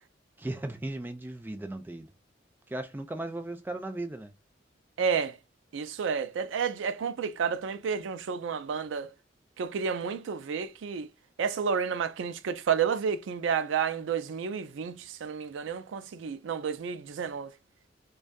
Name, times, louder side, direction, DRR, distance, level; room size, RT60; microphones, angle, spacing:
voice 1, 0.4-2.1 2.7-4.3, right 1 dB, 10° right, 0.4 m, -36 dB
voice 2, 5.0-5.4 5.7-9.1 9.6-11.1 11.4-17.5, right 6 dB, 85° right, 0.4 m, -31 dB
2.5 x 2.2 x 2.2 m
head